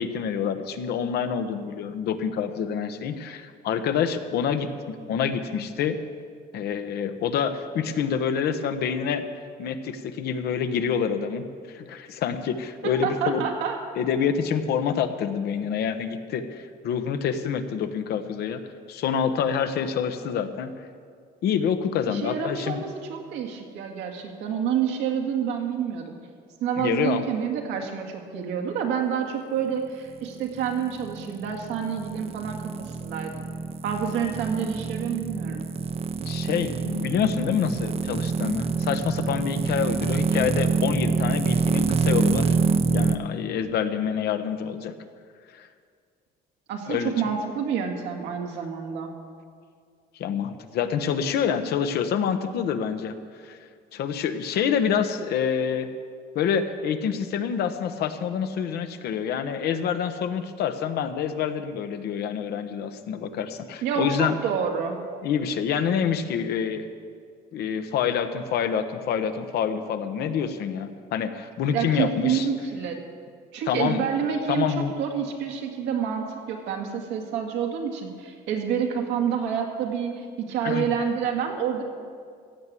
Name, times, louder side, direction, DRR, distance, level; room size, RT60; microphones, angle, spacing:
voice 1, 0.0-6.0 6.5-9.3 9.6-13.5 14.0-18.6 18.9-20.7 21.4-22.8 26.7-27.2 36.3-42.6 42.9-44.9 45.5-45.7 46.9-47.1 50.2-53.2 53.4-53.6 53.9-55.9 56.3-64.4 65.2-66.9 67.5-72.5 73.7-74.0 74.5-74.9 80.6-80.9, left 7 dB, 70° left, 9 dB, 1.1 m, -27 dB
voice 2, 12.8-13.8 22.1-26.1 26.6-33.5 33.8-35.6 46.7-49.1 63.8-65.0 71.7-73.0 73.5-81.8, right 7 dB, 90° right, 2 dB, 2.1 m, -28 dB
sound 1, 30.3-43.2, right 5 dB, 35° right, 0.7 m, -26 dB
15.5 x 8.2 x 7.6 m, 2.1 s
cardioid pair, 110°, 17 cm